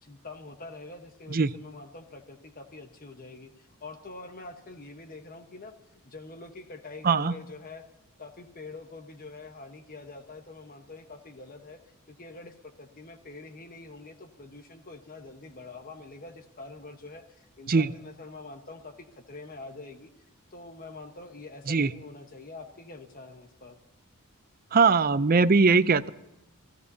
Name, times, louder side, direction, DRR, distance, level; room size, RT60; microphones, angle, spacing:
voice 1, 0.0-7.9 8.2-20.1 20.5-23.8, left 3 dB, 40° left, 6 dB, 1.2 m, -45 dB
voice 2, 24.7-26.1, right 4 dB, 40° right, 15 dB, 0.5 m, -21 dB
29.5 x 16.5 x 2.8 m, 0.89 s
head